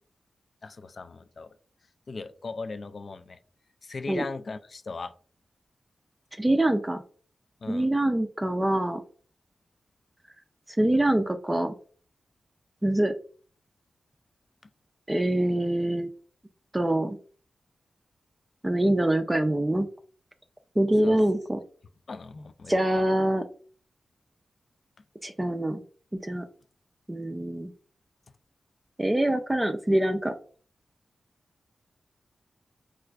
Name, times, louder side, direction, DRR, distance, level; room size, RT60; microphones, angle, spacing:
voice 1, 0.6-1.5 2.1-3.4 3.8-5.1 7.6-7.9 21.0-21.2 22.1-23.0, left 3 dB, 60° left, 10 dB, 0.3 m, -38 dB
voice 2, 6.4-7.0 7.7-9.0 10.7-11.7 12.8-13.1 15.1-16.1 16.7-17.2 18.6-19.9 20.8-21.6 22.7-23.5 25.2-25.8 26.2-26.5 27.1-27.7 29.0-30.3, right 1 dB, 15° right, 6 dB, 0.4 m, -24 dB
4.3 x 2.4 x 2.3 m, 0.42 s
cardioid pair, 55°, 0 cm